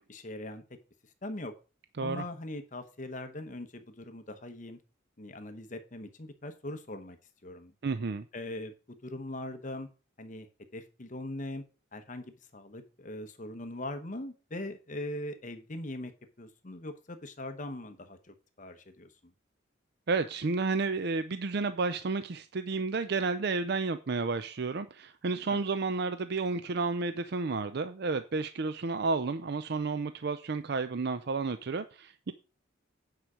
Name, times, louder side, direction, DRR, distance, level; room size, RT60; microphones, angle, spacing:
voice 1, 0.1-0.6 1.2-1.5 2.0-4.8 5.2-7.2 7.4-7.7 8.3-9.9 10.2-10.5 10.7-11.6 11.9-16.1 16.4-19.3 25.5-25.6, left 1 dB, 40° left, 8 dB, 0.9 m, -41 dB
voice 2, 7.8-8.3 20.1-32.3, right 4 dB, 50° right, 11 dB, 0.5 m, -31 dB
9.2 x 4.9 x 6.1 m, 0.33 s
head